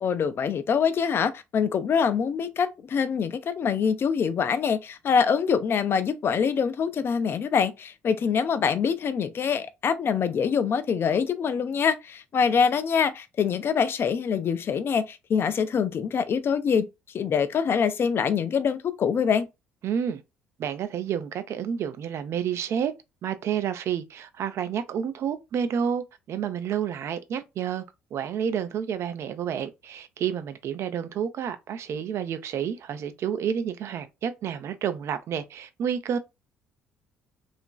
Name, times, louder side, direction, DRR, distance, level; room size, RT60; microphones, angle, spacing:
voice 1, 0.0-16.9 17.1-19.5, left 6 dB, 40° left, 0.4 m, -24 dB
voice 2, 19.8-20.2 20.6-22.9 23.2-27.8 28.1-36.2, right 8 dB, 50° right, 0.4 m, -30 dB
2.9 x 2.4 x 2.2 m
figure-of-eight pair, 50°, 6 cm